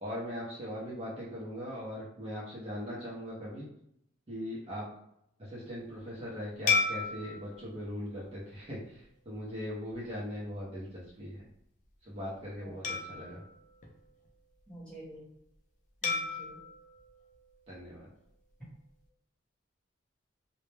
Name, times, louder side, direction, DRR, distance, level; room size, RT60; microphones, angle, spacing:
voice 1, 0.0-3.7 4.3-4.9 5.4-11.4 12.0-13.4 17.7-18.1, equal, 30° right, -7 dB, 0.6 m, -40 dB
sound 1, 6.7-9.3 9.9-10.1 12.8-14.6 16.0-18.3, left 4 dB, 40° left, 0.4 m, -36 dB
voice 2, 12.6-13.4 14.7-15.3 16.0-16.6, right 1 dB, 5° left, -8 dB, 1.0 m, -49 dB
2.1 x 2.0 x 3.2 m, 0.75 s
head